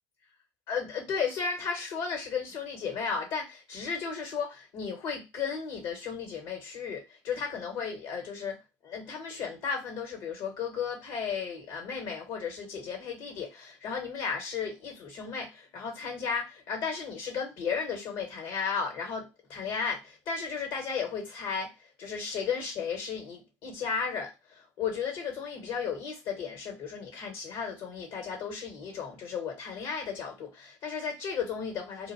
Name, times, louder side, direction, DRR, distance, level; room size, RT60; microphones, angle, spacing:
voice 1, 0.7-21.7 22.0-32.1, left 6 dB, 70° left, 1.5 m, -34 dB
2.7 x 2.6 x 2.8 m
hypercardioid pair, 60°, 9 cm